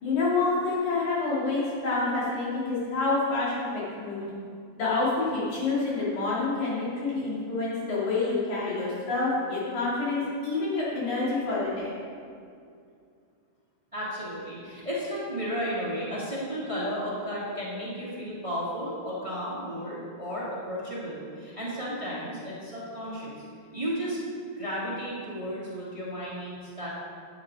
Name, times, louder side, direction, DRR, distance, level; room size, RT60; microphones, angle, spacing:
voice 1, 0.0-4.3 4.8-11.9, left 3 dB, 75° left, -8 dB, 4.1 m, -28 dB
voice 2, 13.9-23.4 23.7-24.2 24.6-26.9, equal, 15° right, -7 dB, 1.2 m, -33 dB
9.9 x 7.3 x 5.1 m, 2.3 s
omnidirectional pair, 3.4 m